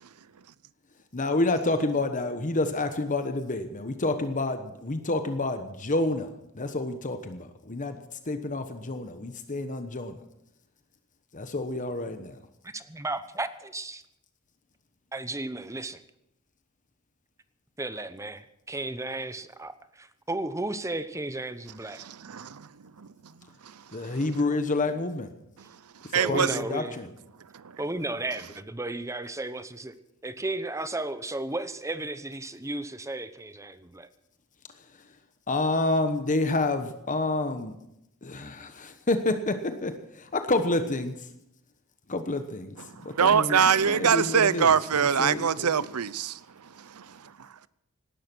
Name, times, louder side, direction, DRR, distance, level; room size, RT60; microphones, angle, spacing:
voice 1, 1.1-8.0 8.3-10.2 11.3-12.4 23.9-25.3 26.1-27.1 35.5-37.7 38.2-41.3 42.1-42.8 43.0-45.7, left 2 dB, 35° left, 1.1 m, -29 dB
voice 2, 12.6-14.0 15.1-16.0 17.8-22.0 26.2-27.0 27.8-29.9 30.2-34.1, right 2 dB, 15° right, 0.9 m, -34 dB
voice 3, 22.0-22.7 23.0-23.1 23.6-23.7 24.0-24.2 26.0-26.6 27.5-27.6 42.9-46.4 46.8-47.7, right 7 dB, 90° right, 0.7 m, -24 dB
18.0 x 12.0 x 6.1 m
head